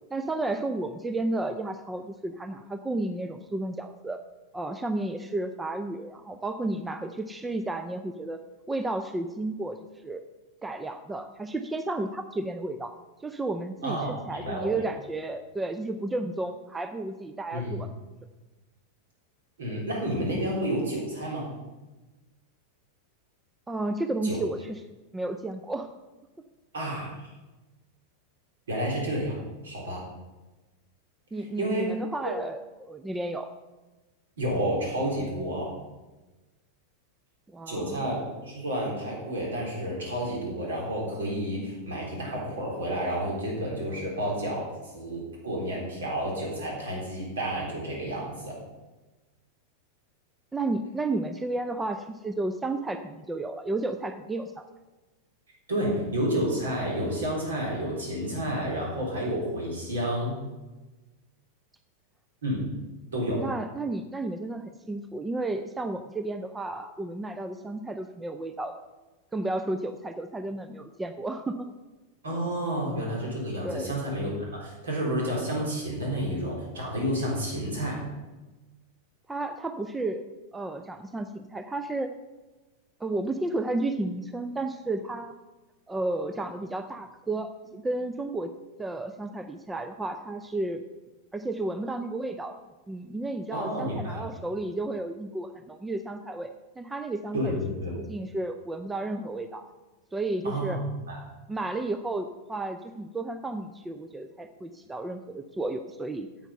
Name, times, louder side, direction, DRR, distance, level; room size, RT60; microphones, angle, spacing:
voice 1, 0.1-4.2 4.5-8.4 8.7-9.8 10.0-10.2 10.6-12.9 13.2-17.9 23.7-24.8 25.1-25.9 31.3-33.5 37.5-38.1 50.5-54.6 63.4-68.9 69.3-71.7 73.6-73.9 79.3-80.2 80.5-82.1 83.0-85.3 85.9-88.5 88.8-90.8 91.3-92.6 92.9-96.5 96.8-97.6 98.0-99.6 100.1-100.8 101.5-106.3, right 2 dB, 10° right, 8 dB, 0.5 m, -32 dB
voice 2, 13.8-14.7 17.5-17.8 19.6-21.5 24.2-24.4 26.7-27.2 28.7-29.4 29.6-30.0 31.6-31.9 34.4-35.7 37.7-44.7 44.9-48.6 55.7-60.4 62.4-62.6 63.1-63.4 72.2-78.0 93.5-94.2 97.3-97.9 100.4-100.8 101.1-101.2, equal, 65° right, -2 dB, 3.7 m, -30 dB
9.1 x 7.8 x 5.5 m, 1.1 s
figure-of-eight pair, 90°, 0 cm